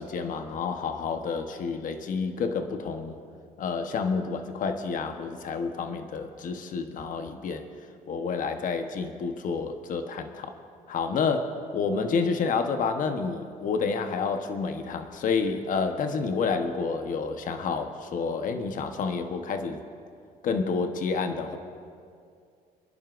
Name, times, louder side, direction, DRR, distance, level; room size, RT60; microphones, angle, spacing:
voice 1, 0.0-3.2 3.6-7.7 8.1-10.5 10.9-19.8 20.4-21.6, left 5 dB, 60° left, 6 dB, 1.1 m, -29 dB
30.0 x 11.0 x 2.5 m, 2.3 s
cardioid pair, 100°, 16 cm